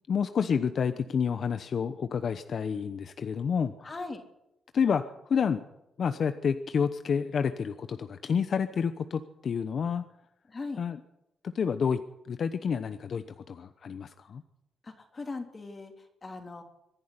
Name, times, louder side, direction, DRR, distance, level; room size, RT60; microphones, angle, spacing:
voice 1, 0.1-3.9 4.7-5.6 6.0-10.0 10.8-11.0 11.4-14.4, left 6 dB, 55° left, 10 dB, 0.9 m, -29 dB
voice 2, 3.8-4.2 10.5-10.8 14.8-16.6, left 3 dB, 30° left, 4 dB, 3.2 m, -39 dB
24.5 x 11.0 x 9.8 m, 0.88 s
cardioid pair, 105°, 0 cm